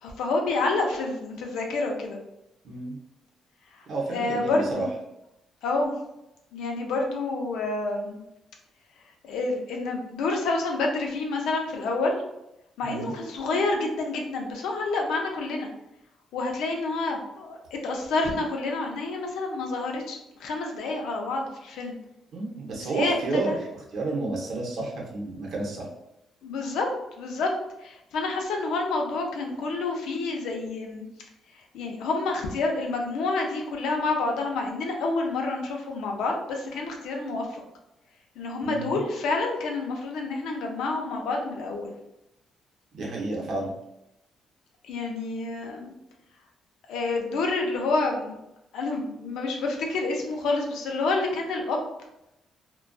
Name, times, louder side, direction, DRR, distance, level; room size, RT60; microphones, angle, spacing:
voice 1, 0.0-2.2 3.7-4.9 5.6-5.9 6.5-8.2 9.2-12.1 12.8-15.7 16.3-22.0 22.8-23.6 26.4-26.9 27.2-27.5 27.8-31.0 31.5-37.6 38.4-41.9 44.8-45.9 46.9-48.3 48.7-51.9, left 3 dB, 85° left, 2 dB, 0.4 m, -28 dB
voice 2, 2.6-3.0 3.9-4.9 12.8-13.1 22.3-23.6 23.9-25.9 38.6-39.0 42.9-43.7, right 3 dB, 65° right, -1 dB, 0.7 m, -30 dB
2.5 x 2.2 x 2.2 m, 0.87 s
cardioid pair, 95°, 0 cm